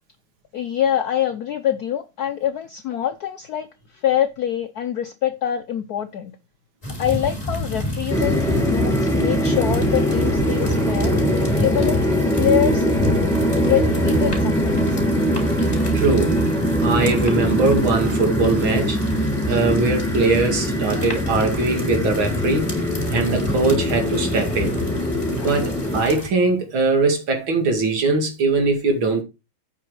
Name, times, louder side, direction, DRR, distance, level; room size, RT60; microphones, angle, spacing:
voice 1, 0.5-6.3 7.0-11.1 11.6-12.1 12.4-13.2 13.5-15.0 25.4-25.6, left 10 dB, 70° left, 0.9 m, -25 dB
sound 1, 6.8-26.3, left 1 dB, 15° left, 3.4 m, -29 dB
sound 2, 8.1-26.0, equal, ahead, 1.4 m, -22 dB
voice 2, 15.9-16.4 16.8-19.0 19.5-22.7 23.1-24.8 25.3-29.2, right 3 dB, 65° right, 2.8 m, -21 dB
8.6 x 6.0 x 4.8 m
omnidirectional pair, 2.4 m